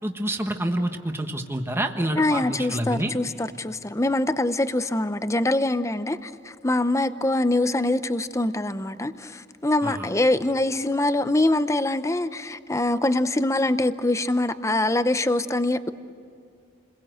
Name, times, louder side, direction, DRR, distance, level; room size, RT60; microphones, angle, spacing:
voice 1, 0.0-3.1 9.8-10.1, right 1 dB, 10° right, 1.3 m, -28 dB
voice 2, 2.2-15.9, left 2 dB, 15° left, 0.7 m, -24 dB
29.0 x 21.5 x 7.9 m
head